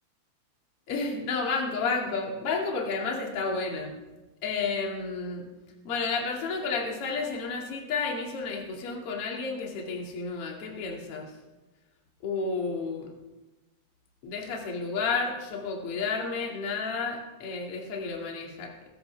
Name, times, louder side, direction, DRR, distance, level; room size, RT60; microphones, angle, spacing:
voice 1, 0.9-4.0 4.4-5.5 5.8-11.3 12.2-13.1 14.2-18.7, left 4 dB, 40° left, -1 dB, 2.4 m, -31 dB
23.0 x 13.0 x 3.5 m, 1.1 s
omnidirectional pair, 5.5 m